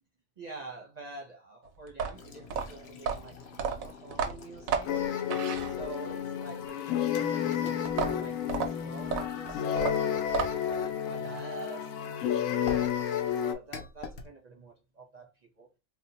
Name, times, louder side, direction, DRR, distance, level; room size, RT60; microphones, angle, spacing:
voice 1, 0.4-4.9 5.7-10.1 10.5-13.0 13.3-15.7, right 3 dB, 40° right, 0.6 m, -47 dB
sound 1, 1.9-6.2 7.9-10.8, right 7 dB, 90° right, 1.0 m, -33 dB
Pouring Coffee (Several Times), 2.1-9.8 12.7-14.3, left 5 dB, 60° left, 0.8 m, -48 dB
sound 2, 4.9-13.5, left 9 dB, 85° left, 1.0 m, -31 dB
2.7 x 2.1 x 4.0 m
omnidirectional pair, 1.4 m